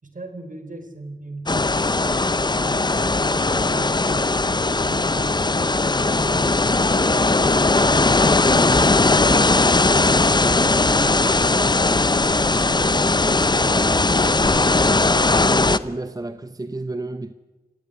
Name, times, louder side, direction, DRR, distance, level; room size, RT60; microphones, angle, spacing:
voice 1, 0.0-3.0 3.4-4.4 4.7-5.6 6.1-7.5 10.3-11.8 12.4-14.5, right 2 dB, 55° right, 3.8 m, -39 dB
sound 1, 1.5-15.8, left 3 dB, 25° left, 0.7 m, -18 dB
voice 2, 15.5-17.3, right 2 dB, 25° right, 0.9 m, -31 dB
28.5 x 17.0 x 9.9 m
wide cardioid pair, 85°, 16 cm